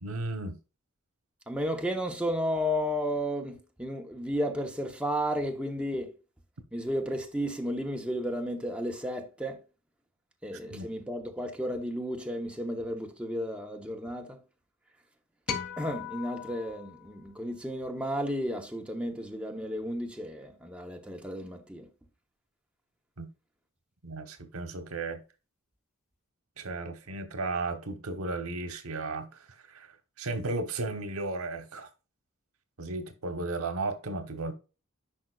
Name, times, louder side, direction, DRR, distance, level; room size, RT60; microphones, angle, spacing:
voice 1, 0.0-0.6 10.7-10.9 23.2-23.3 24.0-25.2 26.6-29.9 30.2-31.9 32.8-34.5, right 2 dB, 85° right, 1.1 m, -34 dB
voice 2, 1.5-6.1 6.7-9.6 10.4-14.4 15.8-21.9, equal, 5° right, 0.9 m, -33 dB
sound 1, 15.5-18.0, left 7 dB, 70° left, 1.7 m, -39 dB
10.5 x 5.1 x 2.4 m
head